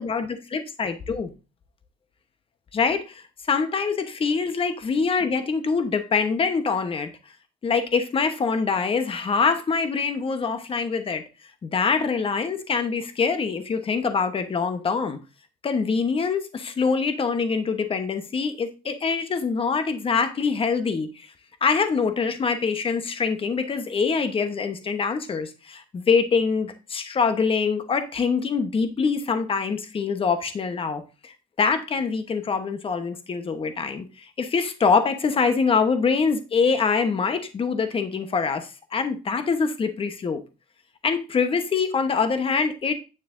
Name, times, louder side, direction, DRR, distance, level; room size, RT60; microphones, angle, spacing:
voice 1, 0.0-1.3 2.7-7.1 7.6-11.2 11.6-15.2 15.6-21.3 21.6-40.4 41.0-42.9, left 5 dB, 30° left, 1.1 m, -24 dB
9.1 x 6.6 x 2.6 m
cardioid pair, 110°, 17 cm